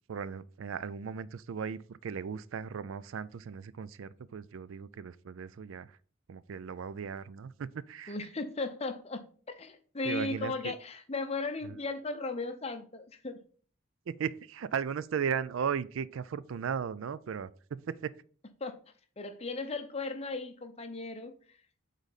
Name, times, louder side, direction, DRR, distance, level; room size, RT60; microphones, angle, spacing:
voice 1, 0.1-5.9 6.3-8.1 10.0-10.7 11.6-11.8 14.1-18.1, right 7 dB, 75° right, 0.4 m, -36 dB
voice 2, 8.1-9.3 9.6-13.4 18.6-18.8 19.2-21.6, left 3 dB, 30° left, 0.7 m, -36 dB
8.1 x 4.1 x 4.0 m
head